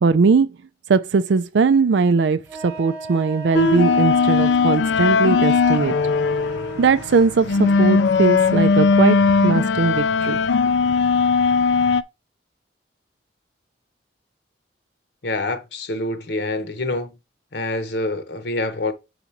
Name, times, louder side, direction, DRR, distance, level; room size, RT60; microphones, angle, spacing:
voice 1, 0.0-0.5 0.9-5.9 6.8-9.2 9.4-10.4, right 4 dB, 80° right, 0.4 m, -19 dB
Wind instrument woodwind instrument, 2.5-8.0, right 4 dB, 15° right, 1.2 m, -36 dB
sound 1, 3.5-12.0, left 4 dB, 85° left, 0.5 m, -18 dB
voice 2, 15.2-17.1 17.5-18.9, left 2 dB, 70° left, 1.0 m, -26 dB
4.9 x 4.1 x 5.7 m
head